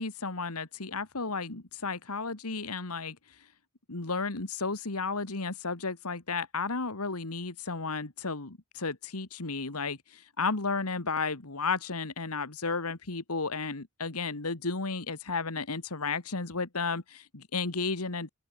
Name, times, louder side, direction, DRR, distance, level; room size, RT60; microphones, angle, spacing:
voice 1, 0.0-3.2 3.9-18.3, left 4 dB, 85° left, 2.0 m, -33 dB
open air
head